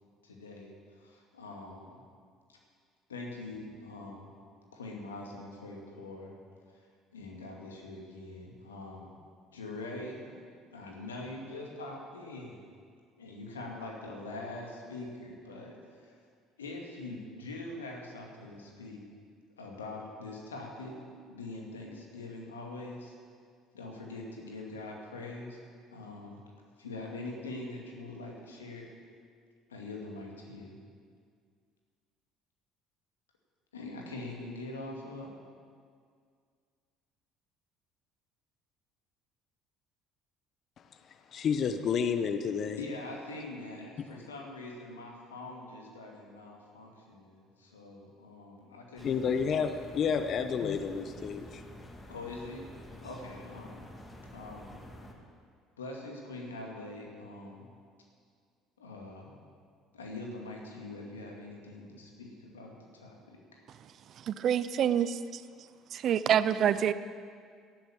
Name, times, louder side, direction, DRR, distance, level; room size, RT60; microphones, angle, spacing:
voice 1, 0.2-2.0 2.5-2.6 3.1-4.3 4.7-6.3 6.7-6.8 7.1-9.2 9.5-10.4 10.7-12.6 13.2-16.2 16.6-19.0 19.6-20.9 21.3-23.1 23.7-25.6 25.9-26.4 26.8-28.9 29.7-30.8 33.7-35.3 42.8-49.4 52.1-52.6 53.0-53.9 54.3-54.8 55.8-57.7 58.8-59.4 59.9-63.6, left 2 dB, 85° left, 0 dB, 2.2 m, -43 dB
voice 2, 41.3-42.8 49.0-51.6, left 6 dB, 50° left, 9 dB, 0.9 m, -30 dB
sound 1, 49.0-55.1, left 1 dB, 20° left, 2.5 m, -49 dB
voice 3, 64.3-65.4 65.9-66.9, right 9 dB, 50° right, 15 dB, 0.6 m, -27 dB
13.5 x 11.5 x 7.0 m, 2.1 s
hypercardioid pair, 60°, 0 cm